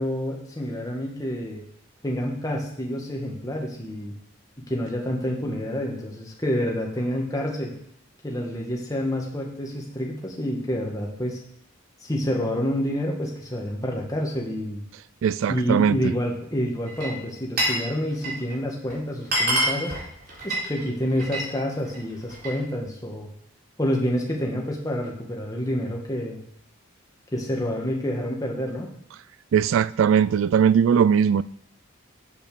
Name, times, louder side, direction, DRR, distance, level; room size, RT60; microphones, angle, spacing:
voice 1, 0.0-1.6 2.0-4.1 4.6-7.7 8.2-11.4 12.0-14.8 15.5-20.0 20.4-23.3 23.8-26.4 27.3-28.9, equal, 15° left, 2.0 m, -28 dB
voice 2, 15.2-16.1 29.5-31.4, right 7 dB, 70° right, 0.3 m, -20 dB
Glass, 16.9-17.9 18.1-18.5 18.9-19.0 19.2-21.5 21.8-22.6, right 1 dB, 45° right, 4.2 m, -26 dB
8.4 x 6.7 x 6.9 m
head